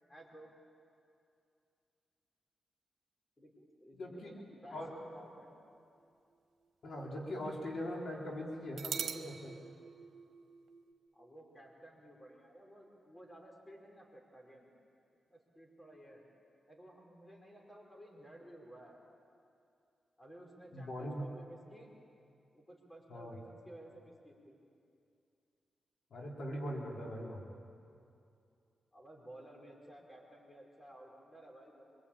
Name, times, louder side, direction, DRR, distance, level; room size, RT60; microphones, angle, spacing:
voice 1, 0.1-0.5 3.4-5.5 11.1-14.7 15.3-16.3 16.7-19.0 20.2-21.9 22.5-24.6 28.9-31.8, right 1 dB, 20° left, 0 dB, 5.2 m, -55 dB
voice 2, 3.9-4.3 4.7-4.9 6.8-9.5 20.7-21.2 23.1-23.4 26.1-27.4, equal, 70° left, -2 dB, 3.9 m, -41 dB
sound 1, 5.4-7.1 7.4-7.5 8.8-10.9, right 7 dB, 85° right, 1.5 m, -44 dB
25.5 x 24.0 x 8.8 m, 2.5 s
wide cardioid pair, 105°, 0 cm